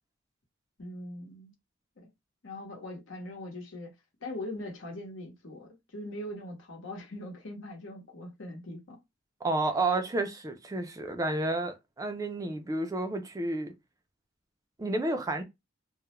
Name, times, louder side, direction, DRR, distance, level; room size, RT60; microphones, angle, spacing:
voice 1, 0.8-1.5 2.0-2.1 2.4-3.9 4.2-9.0, left 1 dB, 85° left, 0.9 m, -41 dB
voice 2, 9.4-13.7 14.8-15.4, right 2 dB, 20° right, 0.3 m, -31 dB
2.3 x 2.0 x 2.9 m
head